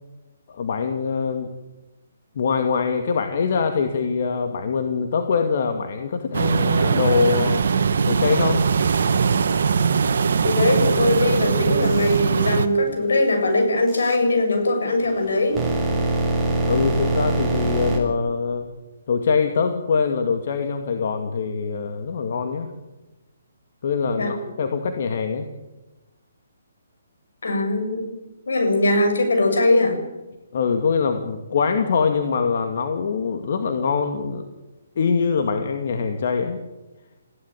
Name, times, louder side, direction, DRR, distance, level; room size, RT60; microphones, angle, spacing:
voice 1, 0.5-1.5 2.4-7.6 8.1-8.6 16.6-18.7 19.1-22.7 23.8-25.5 30.5-34.4 35.0-36.6, left 5 dB, 55° left, 5 dB, 2.3 m, -23 dB
sound 1, 6.3-12.7, right 6 dB, 65° right, 1.6 m, -21 dB
voice 2, 10.4-15.6 24.2-24.4 27.4-28.1 28.5-30.0, left 2 dB, 75° left, 5 dB, 6.8 m, -20 dB
sound 2, 11.8-12.2 13.9-14.2 15.0-18.0, right 2 dB, 5° right, 6.9 m, -23 dB
20.5 x 16.5 x 8.9 m, 1.1 s
hypercardioid pair, 145°, 0 cm